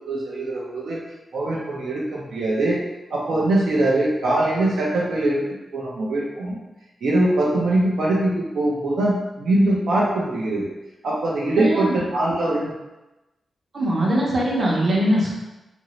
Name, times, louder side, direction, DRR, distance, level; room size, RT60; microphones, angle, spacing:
voice 1, 0.1-1.0 1.3-2.8 3.1-5.4 5.7-6.6 7.0-10.7 11.0-12.7, right 1 dB, 90° right, -4 dB, 0.6 m, -22 dB
voice 2, 11.6-12.0 13.7-15.3, right 1 dB, 50° right, -4 dB, 0.8 m, -21 dB
2.9 x 2.6 x 3.1 m, 1.0 s
wide cardioid pair, 135°, 0 cm